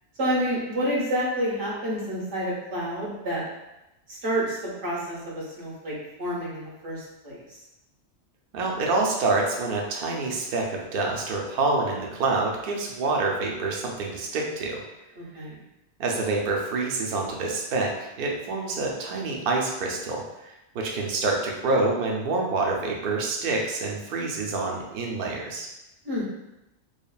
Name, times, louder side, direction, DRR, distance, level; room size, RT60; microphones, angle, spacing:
voice 1, 0.2-3.4 4.1-7.4 15.2-15.6 26.0-26.2, equal, 85° right, -7 dB, 1.4 m, -29 dB
voice 2, 8.5-14.8 16.0-17.9 18.2-25.7, right 3 dB, 60° right, 0 dB, 0.7 m, -27 dB
3.2 x 2.4 x 2.3 m, 0.94 s
omnidirectional pair, 1.2 m